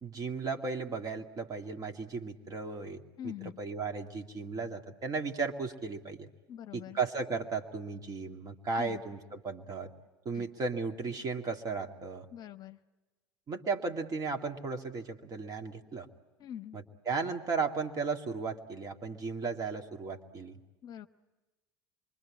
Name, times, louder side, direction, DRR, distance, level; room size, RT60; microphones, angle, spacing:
voice 1, 0.0-6.3 6.7-9.9 10.2-12.3 13.5-16.1 16.7-20.6, right 4 dB, 35° right, 5 dB, 2.2 m, -35 dB
voice 2, 3.2-3.6 6.5-7.0 8.8-9.0 10.3-10.5 12.3-12.8 16.4-16.8 20.8-21.1, left 10 dB, 40° left, 10 dB, 0.9 m, -43 dB
26.5 x 24.0 x 8.6 m, 1.1 s
figure-of-eight pair, 70°, 11 cm